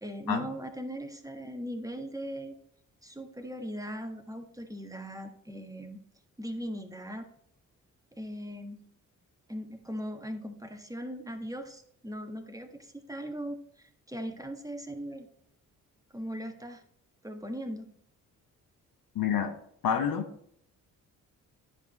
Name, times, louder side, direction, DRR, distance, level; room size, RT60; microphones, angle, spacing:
voice 1, 0.0-2.5 3.0-6.0 6.4-7.3 8.1-8.8 9.5-15.3 16.1-16.8 17.2-17.9, equal, 10° right, 5 dB, 1.4 m, -39 dB
voice 2, 19.1-19.5 19.8-20.3, left 8 dB, 60° left, 4 dB, 1.0 m, -28 dB
9.8 x 5.2 x 4.1 m, 0.67 s
hypercardioid pair, 45°, 40 cm